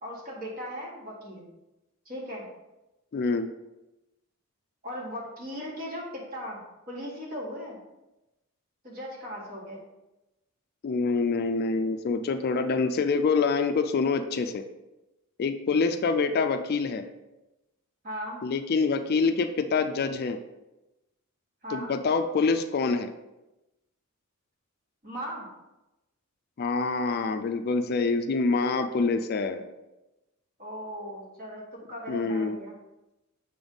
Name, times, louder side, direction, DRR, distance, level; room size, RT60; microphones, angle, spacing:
voice 1, 0.0-1.4 2.0-2.5 4.8-7.8 8.8-9.8 18.0-18.4 21.6-21.9 25.0-25.5 30.6-31.6 31.9-32.7, equal, 40° right, -3 dB, 1.7 m, -38 dB
voice 2, 3.1-3.5 10.8-14.6 15.4-17.0 18.4-20.4 21.7-23.1 26.6-29.6 32.1-32.6, left 4 dB, 45° left, 7 dB, 0.3 m, -26 dB
6.9 x 3.5 x 3.9 m, 0.99 s
head